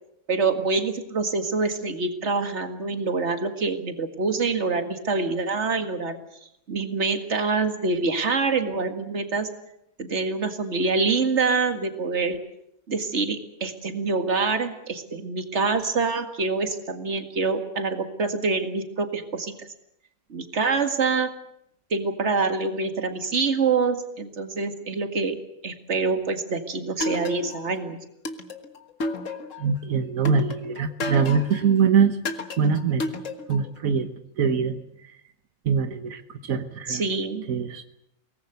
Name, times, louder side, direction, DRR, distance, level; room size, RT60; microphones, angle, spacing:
voice 1, 0.3-6.2 6.7-9.5 10.0-12.4 12.9-19.5 20.3-21.3 21.9-25.4 25.6-28.0 36.9-37.4, right 4 dB, 55° right, 7 dB, 2.2 m, -25 dB
sound 1, 27.0-27.8 28.3-29.7 30.3-31.7 32.3-33.7, left 2 dB, 65° left, 1.9 m, -31 dB
voice 2, 29.6-32.2 32.6-33.0 33.5-34.1 34.4-34.8 35.7-37.0 37.5-37.9, right 6 dB, 90° right, 9 dB, 1.6 m, -23 dB
23.5 x 19.0 x 8.1 m, 0.78 s
omnidirectional pair, 1.4 m